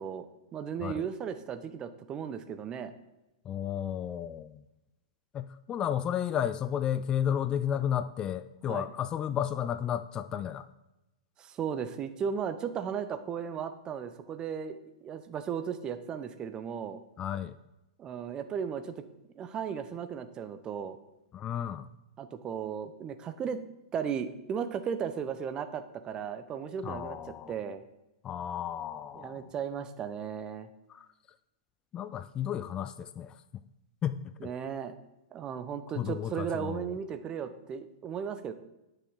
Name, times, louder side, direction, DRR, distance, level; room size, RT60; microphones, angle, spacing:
voice 1, 0.0-2.9 8.7-8.9 11.4-14.8 15.0-17.0 18.0-18.9 19.4-21.0 22.2-23.6 23.9-27.2 27.5-27.8 29.1-30.7 34.4-35.0 35.3-38.5, right 7 dB, 25° right, 11 dB, 0.8 m, -36 dB
voice 2, 3.5-4.6 5.3-10.7 17.2-17.6 21.3-21.9 26.8-27.6 28.2-29.5 30.9-31.1 31.9-33.4 34.0-34.5 36.0-37.0, left 9 dB, 25° left, 13 dB, 0.4 m, -33 dB
9.7 x 6.5 x 4.7 m, 0.95 s
hypercardioid pair, 110°, 3 cm